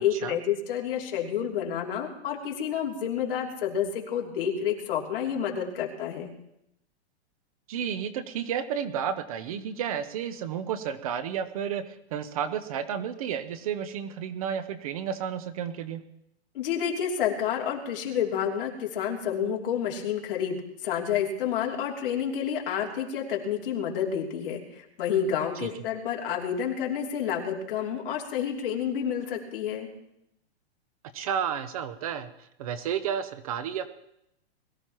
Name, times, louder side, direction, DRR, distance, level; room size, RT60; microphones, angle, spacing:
voice 1, 0.0-6.3 16.5-29.9, left 8 dB, 55° left, 0 dB, 3.0 m, -29 dB
voice 2, 7.7-16.0 25.6-25.7 31.1-33.9, right 8 dB, 35° right, 12 dB, 0.6 m, -32 dB
21.5 x 14.0 x 3.0 m, 0.79 s
hypercardioid pair, 165°, 34 cm